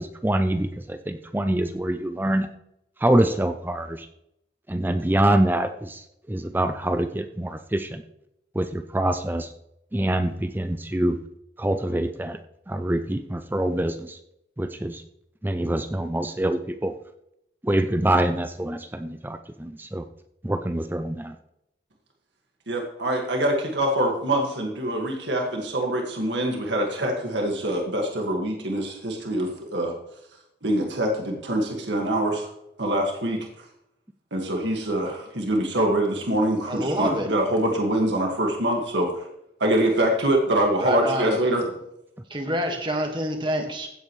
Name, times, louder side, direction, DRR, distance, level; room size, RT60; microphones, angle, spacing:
voice 1, 0.0-2.5 3.0-4.1 4.7-8.0 8.6-9.5 9.9-11.2 11.6-12.4 12.7-14.2 14.6-15.0 15.4-16.9 17.6-20.0 20.4-21.4, right 1 dB, 10° right, 8 dB, 0.4 m, -25 dB
voice 2, 22.7-30.0 30.6-32.5 32.8-33.7 34.3-39.3 39.6-41.7, right 1 dB, 90° right, 1 dB, 1.9 m, -24 dB
voice 3, 36.7-37.3 40.8-41.4 42.3-43.9, equal, 25° right, 3 dB, 1.7 m, -27 dB
16.0 x 8.5 x 3.2 m, 0.80 s
head